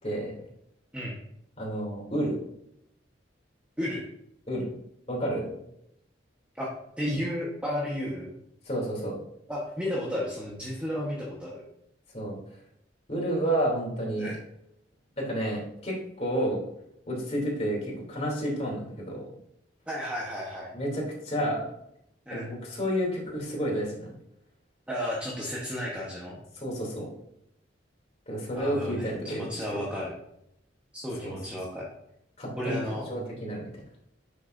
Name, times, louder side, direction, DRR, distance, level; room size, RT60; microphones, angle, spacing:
voice 1, 0.0-0.3 1.6-2.3 4.5-4.7 5.1-5.6 8.6-9.2 12.1-12.4 13.1-14.3 15.2-16.6 17.1-19.3 20.7-21.6 22.3-24.1 26.6-27.1 28.3-29.6 31.2-31.3 32.4-33.7, right 1 dB, 35° left, -3 dB, 3.0 m, -30 dB
voice 2, 7.0-8.3 9.5-11.6 14.2-14.4 19.9-20.7 22.3-22.5 24.9-26.4 28.5-30.1 30.9-31.9 32.5-33.1, equal, 5° right, -5 dB, 1.2 m, -33 dB
9.2 x 6.6 x 2.6 m, 0.76 s
head